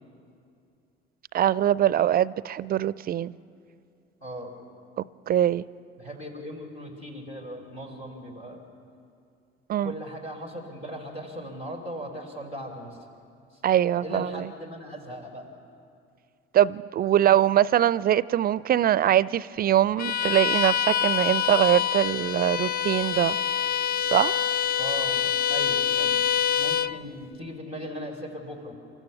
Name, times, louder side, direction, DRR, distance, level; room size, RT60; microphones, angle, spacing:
voice 1, 1.3-3.3 5.0-5.6 9.7-9.9 13.6-14.5 16.5-23.4 24.1-24.4, right 11 dB, 30° right, 20 dB, 0.4 m, -23 dB
voice 2, 4.2-4.5 6.0-8.6 9.8-13.0 13.5-13.6 13.9-15.5 24.8-26.2 26.5-28.7, equal, 90° left, -2 dB, 2.8 m, -38 dB
Bowed string instrument, 20.0-27.0, left 8 dB, 30° left, 0.4 m, -26 dB
28.0 x 13.5 x 6.9 m, 2.4 s
figure-of-eight pair, 55°, 30 cm